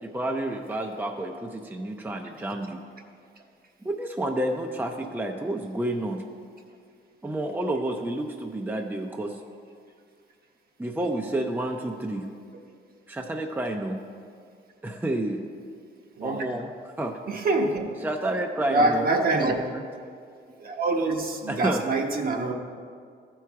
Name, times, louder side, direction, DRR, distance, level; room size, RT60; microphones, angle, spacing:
voice 1, 0.0-2.8 3.8-6.2 7.2-9.4 10.8-12.3 13.1-14.0 14.8-15.4 16.2-17.2 18.0-19.1 19.3-19.5 21.5-21.8, right 1 dB, 10° right, 3 dB, 0.6 m, -30 dB
voice 2, 16.2-16.5 17.3-17.8 18.7-19.6 20.6-22.5, right 2 dB, 50° right, 2 dB, 1.1 m, -25 dB
14.0 x 4.6 x 4.7 m, 2.2 s
cardioid pair, 90°, 20 cm